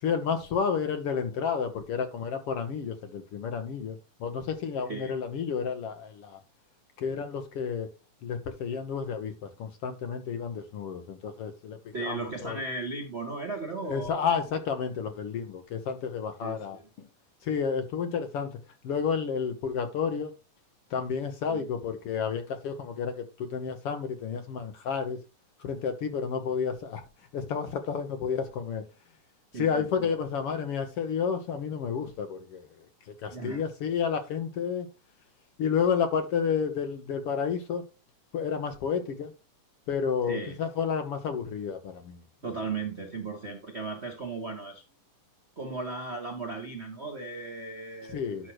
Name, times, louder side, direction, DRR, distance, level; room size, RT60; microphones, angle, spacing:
voice 1, 0.0-6.4 7.0-7.9 8.2-12.6 13.8-17.1 17.4-20.3 20.9-25.2 25.6-27.0 27.3-28.8 29.5-34.9 35.6-37.9 38.3-39.3 39.9-42.2 48.1-48.5, left 6 dB, 65° left, 1.6 m, -31 dB
voice 2, 11.9-14.4 16.4-16.9 21.5-21.7 29.5-30.1 33.3-33.6 40.3-40.6 42.4-44.8 45.6-48.5, right 3 dB, 75° right, 0.6 m, -36 dB
10.5 x 6.1 x 3.1 m
omnidirectional pair, 3.5 m